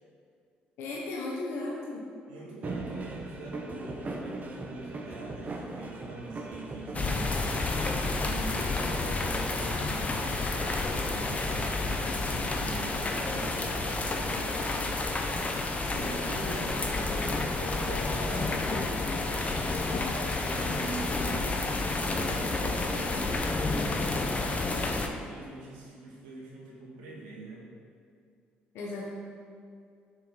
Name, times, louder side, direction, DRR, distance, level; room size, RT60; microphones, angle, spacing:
voice 1, 0.8-2.0 28.7-29.0, left 2 dB, 65° left, -3 dB, 1.3 m, -35 dB
voice 2, 2.3-7.3 8.2-14.9 15.8-21.6 22.2-23.6 23.9-27.7, right 2 dB, 80° right, -4 dB, 2.2 m, -43 dB
sound 1, 2.6-8.3, right 2 dB, 35° right, 1.3 m, -39 dB
sound 2, 6.9-25.1, left 3 dB, 30° left, 1.2 m, -30 dB
10.0 x 6.3 x 4.1 m, 2.3 s
hypercardioid pair, 55°, 5 cm